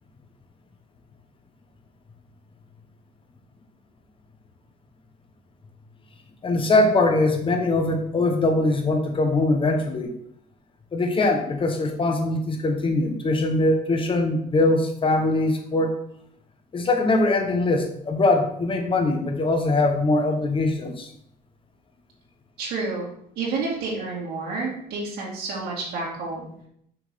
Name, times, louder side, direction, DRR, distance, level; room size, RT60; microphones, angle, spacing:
voice 1, 6.4-10.1 10.9-15.9 16.7-21.1, left 2 dB, 30° left, 5 dB, 1.2 m, -22 dB
voice 2, 22.6-23.1 23.4-26.5, right 3 dB, 75° right, -5 dB, 2.2 m, -29 dB
5.9 x 4.0 x 5.3 m, 0.71 s
cardioid pair, 110°, 17 cm